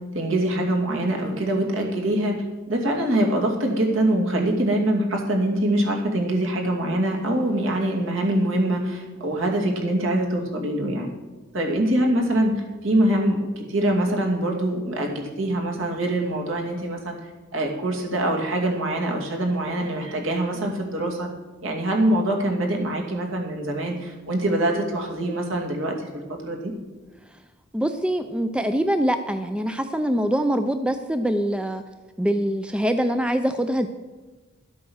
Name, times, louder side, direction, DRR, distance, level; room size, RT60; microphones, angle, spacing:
voice 1, 0.1-11.1 11.5-17.2 17.5-21.3 21.6-26.0 26.4-26.7, right 1 dB, 65° right, 1 dB, 2.4 m, -24 dB
voice 2, 27.7-31.8 32.2-33.9, equal, 5° right, 8 dB, 0.4 m, -24 dB
12.5 x 8.3 x 6.3 m, 1.3 s
head